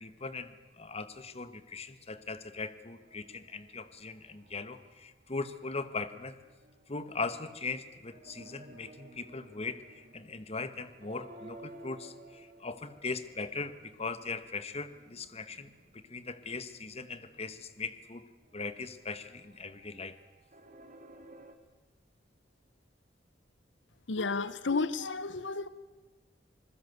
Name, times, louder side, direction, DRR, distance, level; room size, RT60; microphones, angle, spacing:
voice 1, 0.0-6.4 6.9-18.2 18.5-20.2, left 4 dB, 35° left, 12 dB, 1.3 m, -40 dB
sound 1, 2.9-5.1 5.4-21.5, right 1 dB, 45° right, 2.6 m, -56 dB
voice 2, 24.1-25.7, left 4 dB, 75° left, 15 dB, 0.9 m, -32 dB
26.5 x 20.5 x 8.0 m, 1.3 s
head